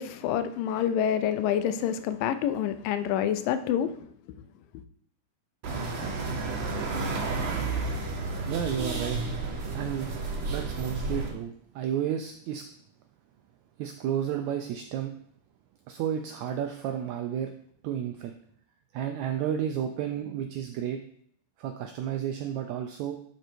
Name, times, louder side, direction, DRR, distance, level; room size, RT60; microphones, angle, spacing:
voice 1, 0.0-4.0, left 9 dB, 90° left, 2.3 m, -27 dB
sound 1, 5.6-11.3, right 3 dB, 55° right, 1.4 m, -31 dB
voice 2, 8.4-9.3 9.7-10.1 10.5-12.6 13.8-15.1 15.9-17.5 17.8-18.3 18.9-21.0 21.6-23.2, right 9 dB, 85° right, 1.6 m, -32 dB
11.0 x 4.5 x 4.4 m
omnidirectional pair, 3.9 m